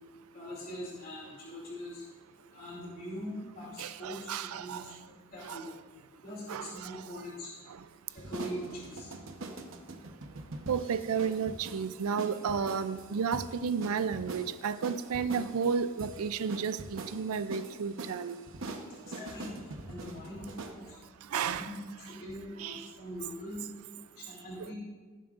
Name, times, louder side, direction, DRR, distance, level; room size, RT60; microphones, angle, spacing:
voice 1, 0.3-2.0 2.5-4.8 5.3-5.7 6.2-7.6 8.1-9.1 19.1-19.5 19.9-20.8 21.3-21.8 22.2-23.6 24.2-24.7, equal, 40° left, -6 dB, 2.6 m, -42 dB
voice 2, 3.8-4.8 5.4-5.7 6.5-7.2 10.7-18.4 21.3-21.7 22.6-22.9 24.6-24.7, right 6 dB, 75° right, 13 dB, 0.4 m, -32 dB
sound 1, 8.1-20.8, right 2 dB, 60° right, 0.9 m, -44 dB
18.0 x 7.3 x 2.5 m, 1.4 s
head